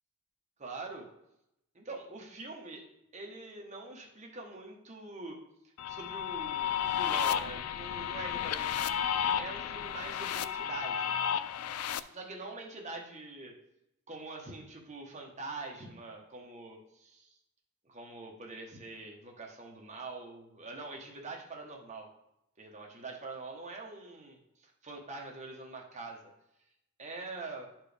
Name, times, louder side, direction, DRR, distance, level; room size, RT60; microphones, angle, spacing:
voice 1, 0.6-1.1 1.7-2.8 3.1-5.4 5.9-8.7 9.3-11.1 12.1-13.5 14.1-17.4 17.8-22.1 22.6-26.3 27.0-27.7, right 3 dB, 30° right, 0 dB, 1.1 m, -44 dB
sound 1, 5.8-12.0, left 9 dB, 85° left, 0.4 m, -32 dB
11.5 x 4.5 x 3.4 m, 0.84 s
head